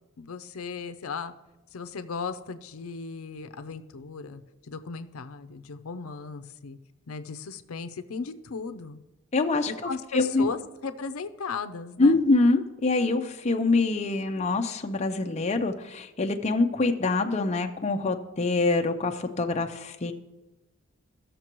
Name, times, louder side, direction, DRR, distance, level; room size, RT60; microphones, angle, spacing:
voice 1, 0.2-1.3 1.7-4.4 4.7-6.8 7.1-9.0 9.7-12.2, left 5 dB, 85° left, 10 dB, 0.5 m, -36 dB
voice 2, 9.3-9.7 10.1-10.5 12.0-20.1, left 3 dB, 30° left, 5 dB, 0.5 m, -25 dB
16.0 x 6.7 x 3.0 m, 1.1 s
head